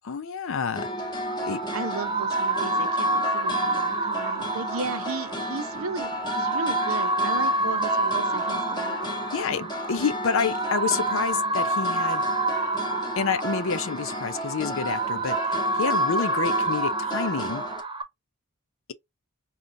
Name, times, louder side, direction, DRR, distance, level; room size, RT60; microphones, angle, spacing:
voice 1, 0.0-0.9 1.5-1.6 9.3-12.2 13.2-17.6, left 5 dB, 65° left, 0.5 m, -28 dB
sound 1, 0.7-17.8, left 1 dB, 20° left, 0.9 m, -33 dB
sound 2, 1.0-18.0, right 2 dB, 20° right, 0.6 m, -28 dB
voice 2, 1.7-8.9, right 4 dB, 75° right, 0.8 m, -35 dB
5.2 x 2.4 x 2.7 m
head